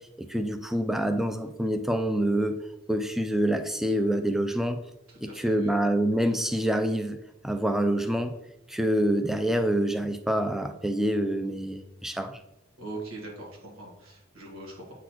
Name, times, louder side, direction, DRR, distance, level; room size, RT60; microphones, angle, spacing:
voice 1, 0.3-2.6 2.9-4.8 5.4-7.2 7.4-8.3 8.7-12.4, right 1 dB, ahead, 7 dB, 0.4 m, -26 dB
voice 2, 5.1-5.8 12.8-14.9, right 2 dB, 85° right, -2 dB, 1.8 m, -41 dB
8.0 x 4.1 x 3.0 m, 0.90 s
head